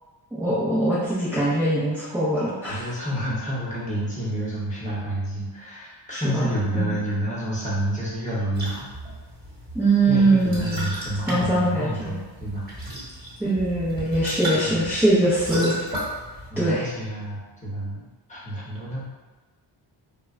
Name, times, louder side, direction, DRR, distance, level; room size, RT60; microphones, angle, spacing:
voice 1, 0.3-2.9 6.1-7.0 9.7-10.8 11.3-12.2 13.4-15.8 16.6-16.8, right 2 dB, 5° right, -10 dB, 0.5 m, -22 dB
voice 2, 2.7-8.9 10.1-12.6 14.4-14.8 16.5-19.0, right 1 dB, 15° left, -8 dB, 0.9 m, -29 dB
sound 1, 8.5-16.5, right 1 dB, 20° right, 1.1 m, -35 dB
2.1 x 2.1 x 3.6 m, 1.3 s
cardioid pair, 110°, 44 cm